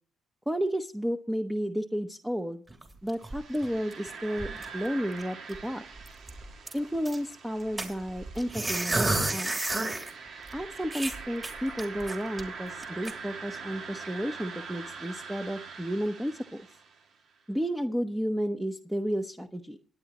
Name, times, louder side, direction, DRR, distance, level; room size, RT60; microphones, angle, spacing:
voice 1, 0.5-2.6 3.0-5.8 6.7-9.6 10.5-16.7 17.5-19.8, equal, 5° right, 5 dB, 0.9 m, -32 dB
sound 1, 2.7-4.1 4.4-4.9 5.2-5.3 5.5-5.7 6.0-7.2 7.8-10.1 10.5-10.6 10.9-12.4 12.8-13.1, right 2 dB, 25° right, 3.0 m, -31 dB
sound 2, 3.2-17.2, right 5 dB, 65° right, 2.0 m, -44 dB
24.5 x 9.5 x 3.0 m, 0.44 s
cardioid pair, 90°, 0 cm